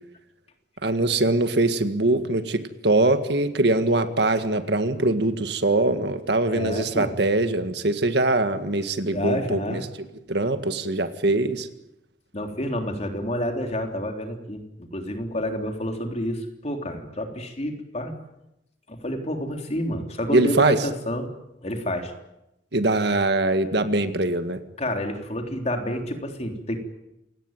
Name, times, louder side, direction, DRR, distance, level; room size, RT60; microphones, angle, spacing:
voice 1, 0.8-9.8 10.3-11.7 20.3-20.8 22.7-24.6, right 2 dB, 65° right, 9 dB, 1.9 m, -22 dB
voice 2, 6.5-7.1 9.1-9.8 12.3-18.1 18.9-21.3 21.6-22.1 24.8-26.8, equal, 35° left, 4 dB, 3.6 m, -29 dB
28.0 x 18.0 x 9.2 m, 0.88 s
head